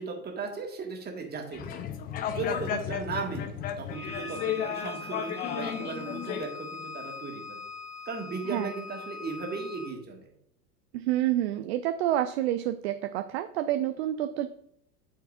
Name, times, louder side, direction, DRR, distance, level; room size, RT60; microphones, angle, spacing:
voice 1, 0.0-1.9 2.3-7.6 8.1-10.3, right 4 dB, 20° right, 1 dB, 1.8 m, -37 dB
sound 1, 1.5-6.4, left 9 dB, 20° left, 0.5 m, -33 dB
Bowed string instrument, 3.9-10.0, left 3 dB, 70° left, 1.8 m, -42 dB
voice 2, 10.9-14.5, right 13 dB, 45° right, 9 dB, 0.5 m, -28 dB
12.0 x 4.6 x 2.6 m, 0.71 s
figure-of-eight pair, 85°, 49 cm